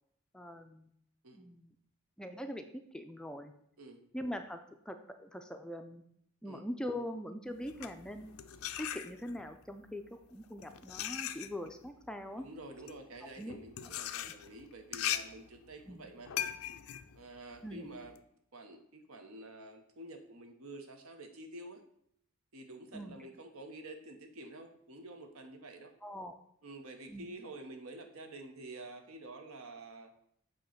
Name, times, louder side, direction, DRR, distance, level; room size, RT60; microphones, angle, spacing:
voice 1, 0.3-0.9 1.3-1.7 2.2-3.5 4.1-4.6 4.9-6.0 6.4-8.3 8.8-12.4 13.4-13.6 15.9-16.1 17.6-17.9 22.9-23.2 26.0-26.3 27.1-27.3, equal, 5° left, 6 dB, 0.4 m, -42 dB
sound 1, 7.6-9.5 10.3-18.2, left 11 dB, 70° left, 0.4 m, -40 dB
voice 2, 12.3-16.3 17.1-18.1 18.5-21.8 22.5-25.9 26.6-30.1, right 2 dB, 70° right, 5 dB, 1.0 m, -49 dB
7.7 x 3.0 x 5.7 m, 0.69 s
head